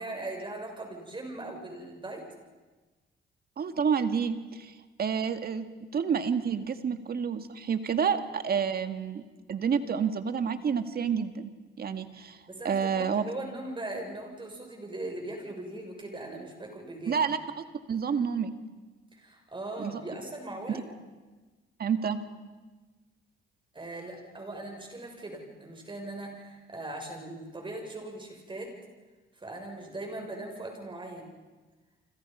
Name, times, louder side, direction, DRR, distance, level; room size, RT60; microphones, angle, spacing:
voice 1, 0.0-2.3 11.9-12.0 12.5-17.3 19.1-20.8 23.7-28.7 29.3-31.3, right 2 dB, 25° right, 2 dB, 7.1 m, -40 dB
voice 2, 3.6-5.7 5.9-9.2 9.5-11.5 11.8-12.4 12.6-13.3 17.1-17.4 17.9-18.5 19.8-20.0 21.8-22.2, right 6 dB, 50° right, 9 dB, 1.9 m, -29 dB
29.5 x 25.5 x 5.6 m, 1.3 s
cardioid pair, 90°, 20 cm